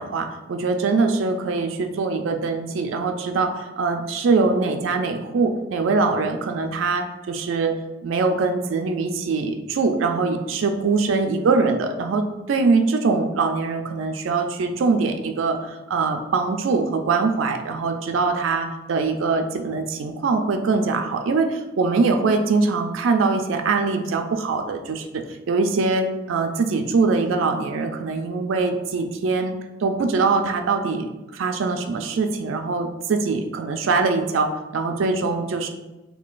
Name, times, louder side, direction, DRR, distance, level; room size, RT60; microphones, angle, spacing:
voice 1, 0.0-7.7 8.0-29.5 29.8-31.1 31.3-35.7, right 4 dB, 85° right, 5 dB, 0.4 m, -23 dB
3.7 x 3.1 x 2.4 m, 1.1 s
head